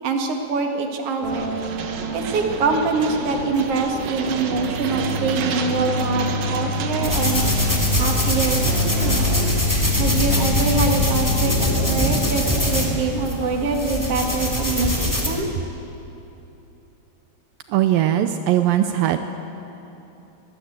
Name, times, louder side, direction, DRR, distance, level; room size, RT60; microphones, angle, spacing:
voice 1, 0.0-1.5 2.1-7.4 8.0-8.6 9.0-9.4 10.0-15.5, right 4 dB, 45° right, 3 dB, 2.2 m, -24 dB
sound 1, 1.2-9.6, right 5 dB, 65° right, 2.7 m, -30 dB
sound 2, 4.3-12.0, left 4 dB, 70° left, 3.8 m, -26 dB
sound 3, 7.0-15.3, equal, 5° left, 2.2 m, -23 dB
voice 2, 17.7-19.2, right 12 dB, 85° right, 8 dB, 2.0 m, -19 dB
24.0 x 20.0 x 8.0 m, 2.9 s
omnidirectional pair, 4.9 m